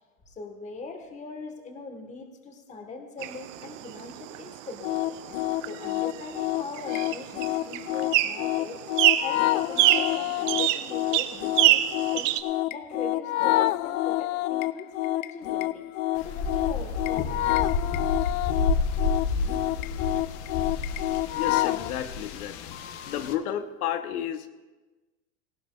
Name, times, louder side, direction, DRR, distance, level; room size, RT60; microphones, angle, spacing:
voice 1, 0.3-5.0 5.6-8.8 9.2-12.3 12.7-15.8 16.2-17.7, left 3 dB, 15° left, 5 dB, 1.3 m, -41 dB
sound 1, 3.2-12.4, right 15 dB, 55° right, 0.8 m, -27 dB
sound 2, 4.8-21.9, left 16 dB, 65° left, 0.5 m, -28 dB
sound 3, 16.2-23.3, left 4 dB, 50° left, 1.0 m, -30 dB
voice 2, 21.4-22.6 23.0-24.5, left 10 dB, 85° left, 9 dB, 1.0 m, -31 dB
18.0 x 16.0 x 2.3 m, 1.2 s
supercardioid pair, 145°, 43 cm